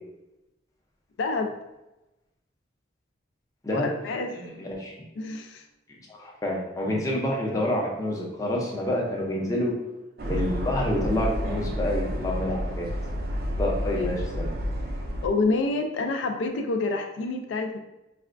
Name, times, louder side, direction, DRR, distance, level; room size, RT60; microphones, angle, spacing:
voice 1, 1.2-1.5 3.7-4.3 5.2-5.6 14.0-14.1 15.2-17.8, left 3 dB, 75° left, 4 dB, 0.3 m, -27 dB
voice 2, 4.3-4.9 6.1-9.7 10.2-12.9 13.6-14.5, left 1 dB, 20° left, -2 dB, 0.5 m, -28 dB
sound 1, 10.2-15.3, equal, 50° right, 0.3 m, -30 dB
4.1 x 2.1 x 2.4 m, 0.98 s
head